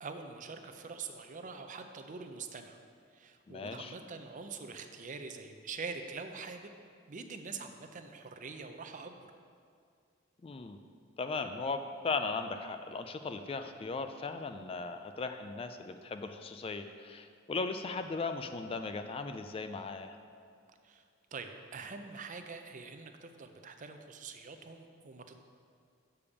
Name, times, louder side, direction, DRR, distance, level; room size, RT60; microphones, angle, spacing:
voice 1, 0.0-2.8 3.1-6.7 7.1-9.3 20.8-21.0 21.3-25.4, right 4 dB, 40° right, 6 dB, 0.5 m, -44 dB
voice 2, 3.5-3.9 10.4-10.8 11.2-20.2, left 4 dB, 30° left, 8 dB, 0.3 m, -37 dB
6.8 x 5.1 x 7.0 m, 2.3 s
head